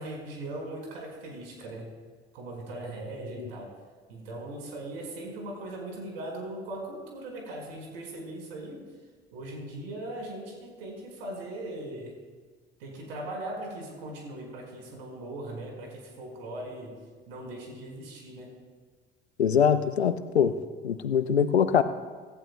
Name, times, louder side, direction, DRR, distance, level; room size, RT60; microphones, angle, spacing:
voice 1, 0.0-1.9 2.3-3.8 4.1-8.8 9.3-12.1 12.8-17.0 17.3-18.6, right 1 dB, 75° right, 0 dB, 5.1 m, -39 dB
voice 2, 19.4-20.5 20.8-21.8, left 8 dB, 90° left, 11 dB, 0.8 m, -23 dB
25.5 x 15.0 x 2.3 m, 1.5 s
figure-of-eight pair, 60°, 31 cm